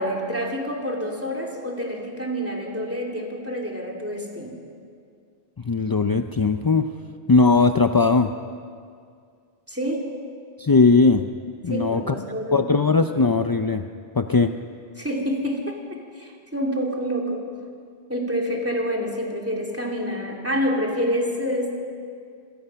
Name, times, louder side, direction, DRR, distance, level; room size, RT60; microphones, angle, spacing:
voice 1, 0.0-4.6 9.7-10.0 11.7-12.7 15.0-17.4 18.1-21.7, equal, 10° right, 0 dB, 2.8 m, -27 dB
voice 2, 5.6-6.9 7.3-8.3 10.6-11.3 11.6-12.1 12.5-13.8 14.2-14.5, left 4 dB, 35° left, 7 dB, 0.3 m, -19 dB
26.0 x 17.5 x 5.7 m, 2.2 s
omnidirectional pair, 1.1 m